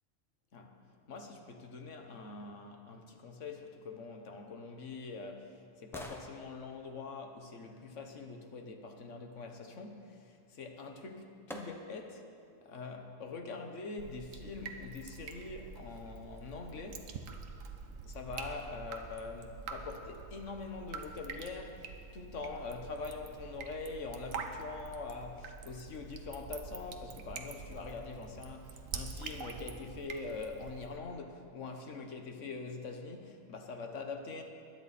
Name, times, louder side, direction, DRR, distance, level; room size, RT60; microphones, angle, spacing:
voice 1, 0.5-12.3 12.6-17.2 18.0-34.4, left 4 dB, 65° left, 5 dB, 1.5 m, -44 dB
sound 1, 4.6-8.5 10.6-10.7 11.5-12.2 12.7-12.8, equal, ahead, 0.9 m, -52 dB
Drip, 14.0-31.0, right 5 dB, 80° right, 1.3 m, -46 dB
21.0 x 10.0 x 4.2 m, 2.4 s
omnidirectional pair, 1.4 m